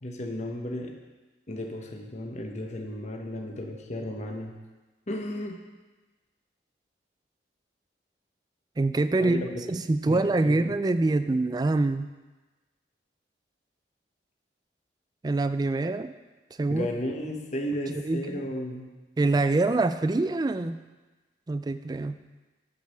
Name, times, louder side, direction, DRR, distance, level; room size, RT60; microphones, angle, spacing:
voice 1, 0.0-0.9 1.5-4.6 5.1-5.6 9.2-9.6 10.0-10.6 16.7-18.9, left 1 dB, 40° left, 2 dB, 1.0 m, -34 dB
voice 2, 8.8-12.1 15.2-16.1 16.6-16.9 18.0-18.4 19.2-20.8 21.5-22.2, right 2 dB, 20° right, 11 dB, 0.3 m, -25 dB
9.3 x 5.2 x 5.6 m, 1.2 s
head